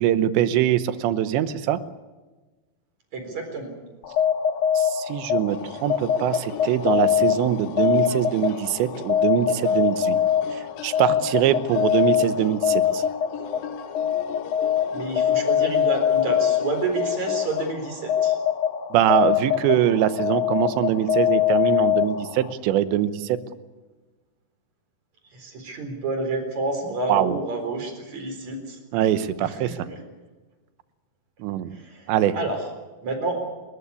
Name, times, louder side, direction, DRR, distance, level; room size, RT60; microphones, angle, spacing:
voice 1, 0.0-1.8 4.7-10.2 10.5-13.0 18.9-23.4 27.1-27.3 28.9-29.9 31.4-31.7 32.1-32.3, right 11 dB, 90° right, 13 dB, 3.2 m, -23 dB
voice 2, 3.1-3.7 14.9-18.4 25.3-28.8 29.4-30.0 31.7-32.6 33.0-33.4, right 2 dB, 40° right, 5 dB, 4.9 m, -29 dB
sound 1, 4.0-22.5, left 9 dB, 60° left, 2.4 m, -24 dB
sound 2, 5.5-17.7, left 7 dB, 80° left, 3.3 m, -39 dB
29.5 x 14.0 x 9.8 m, 1.3 s
omnidirectional pair, 5.0 m